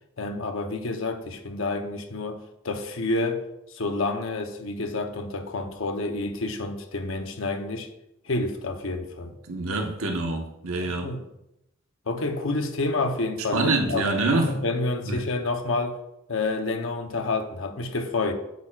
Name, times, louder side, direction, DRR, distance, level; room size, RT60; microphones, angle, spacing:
voice 1, 0.2-2.4 2.6-7.9 8.3-9.3 10.8-11.2 12.1-14.1 14.5-16.0 16.3-18.3, left 2 dB, 70° left, 0.9 m, -29 dB
voice 2, 9.5-11.2 13.5-14.6 15.0-15.2, right 2 dB, 80° right, 1.3 m, -25 dB
8.8 x 8.1 x 2.5 m
head